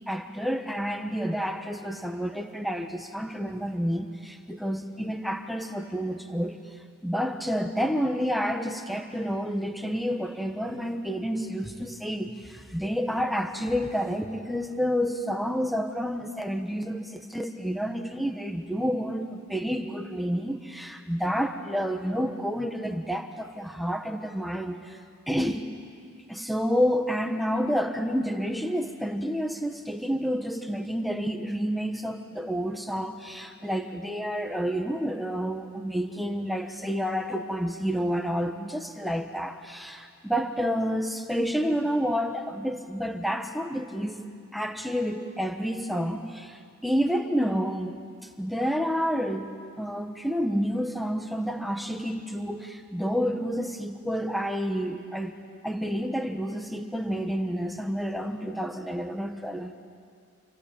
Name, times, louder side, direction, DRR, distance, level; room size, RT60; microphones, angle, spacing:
voice 1, 0.1-6.6 7.0-25.0 25.3-25.6 26.3-44.3 44.5-48.0 48.4-55.4 55.6-59.7, equal, ahead, 5 dB, 1.3 m, -29 dB
28.5 x 23.5 x 8.7 m, 2.2 s
head